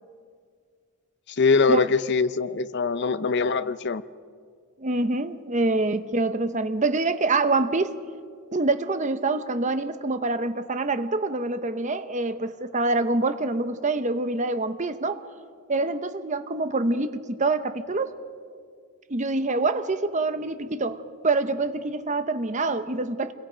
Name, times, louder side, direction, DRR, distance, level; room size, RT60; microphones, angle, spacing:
voice 1, 1.3-4.0, left 4 dB, 50° left, 14 dB, 0.6 m, -23 dB
voice 2, 4.8-8.0 8.5-15.2 15.7-18.2 19.1-23.3, right 3 dB, 35° right, 11 dB, 0.8 m, -26 dB
28.5 x 22.5 x 5.1 m, 2.1 s
head